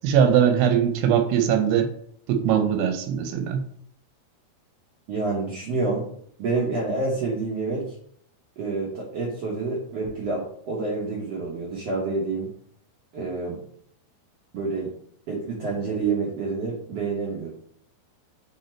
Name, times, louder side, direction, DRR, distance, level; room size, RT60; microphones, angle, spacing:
voice 1, 0.0-1.9 2.3-3.6, right 8 dB, 90° right, 6 dB, 2.8 m, -21 dB
voice 2, 5.1-6.1 6.4-7.9 8.6-12.5 13.1-13.6 14.5-14.9 15.3-17.5, right 3 dB, 65° right, -5 dB, 1.6 m, -28 dB
7.9 x 2.9 x 4.4 m, 0.64 s
omnidirectional pair, 4.4 m